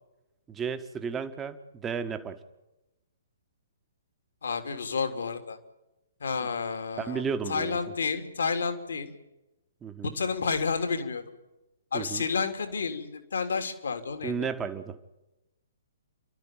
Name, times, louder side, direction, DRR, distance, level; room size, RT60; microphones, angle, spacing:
voice 1, 0.5-2.4 7.0-7.8 9.8-10.1 11.9-12.3 14.2-15.0, right 6 dB, 15° right, 9 dB, 1.8 m, -33 dB
voice 2, 4.4-5.6 6.2-7.2 7.5-9.1 10.1-11.2 11.9-14.5, left 5 dB, 65° left, 7 dB, 3.1 m, -30 dB
30.0 x 13.0 x 9.0 m, 1.0 s
figure-of-eight pair, 125°, 0 cm